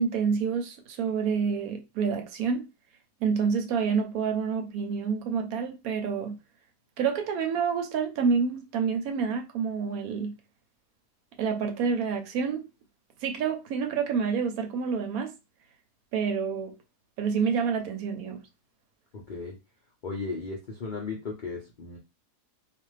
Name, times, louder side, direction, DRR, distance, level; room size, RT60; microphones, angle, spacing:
voice 1, 0.0-2.7 3.2-6.4 7.0-10.4 11.4-12.7 13.2-15.3 16.1-16.7 17.2-18.4, right 6 dB, 70° right, 1.0 m, -28 dB
voice 2, 19.1-19.6 20.0-22.0, left 4 dB, 70° left, 0.4 m, -36 dB
2.5 x 2.4 x 3.1 m
omnidirectional pair, 1.7 m